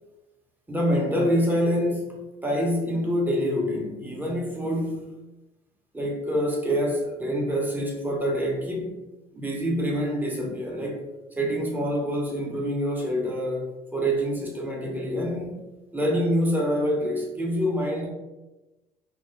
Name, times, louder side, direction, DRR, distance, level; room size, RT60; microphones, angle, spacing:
voice 1, 0.7-5.2 5.9-9.0 9.3-15.6 15.9-18.1, equal, 10° right, -2 dB, 0.8 m, -26 dB
3.2 x 2.0 x 3.1 m, 1.0 s
cardioid pair, 110°, 17 cm